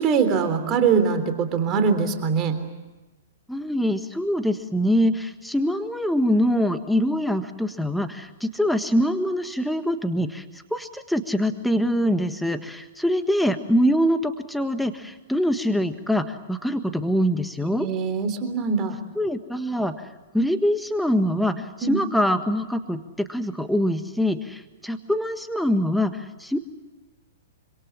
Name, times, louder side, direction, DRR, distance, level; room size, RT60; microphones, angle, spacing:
voice 1, 0.0-2.6 17.8-19.0 21.8-22.0, right 6 dB, 30° right, 7 dB, 3.5 m, -22 dB
voice 2, 3.5-10.4 10.7-17.9 19.1-19.9 20.3-26.6, equal, ahead, 8 dB, 1.6 m, -24 dB
27.0 x 26.0 x 7.5 m, 1.2 s
figure-of-eight pair, 110°, 0 cm